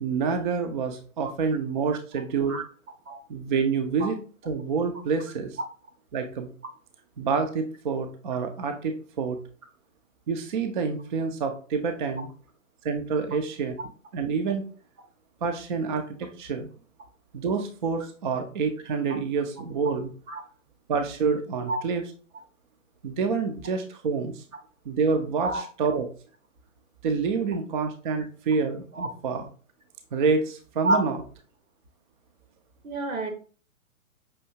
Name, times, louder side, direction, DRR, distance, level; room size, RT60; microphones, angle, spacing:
voice 1, 0.0-2.6 3.3-4.2 4.5-5.6 6.1-6.5 7.2-9.4 10.3-12.3 12.8-13.7 14.1-14.6 15.4-16.7 17.3-20.1 20.9-22.0 23.0-24.4 24.9-26.1 27.0-29.5 30.1-31.2, right 5 dB, 40° right, 6 dB, 0.4 m, -27 dB
voice 2, 32.8-33.3, right 2 dB, 75° right, 6 dB, 1.2 m, -27 dB
5.6 x 2.7 x 2.6 m, 0.40 s
figure-of-eight pair, 125°, 42 cm